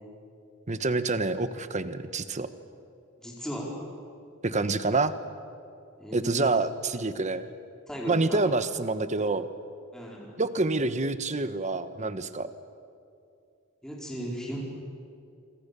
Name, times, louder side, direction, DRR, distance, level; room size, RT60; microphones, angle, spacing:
voice 1, 0.7-2.5 4.4-5.1 6.1-7.4 8.1-9.5 10.4-12.5, right 3 dB, 35° right, 11 dB, 1.1 m, -27 dB
voice 2, 3.2-3.7 6.0-6.5 7.9-8.5 9.9-10.4 13.8-14.6, equal, 5° left, -3 dB, 4.6 m, -36 dB
27.0 x 25.0 x 7.0 m, 2.6 s
head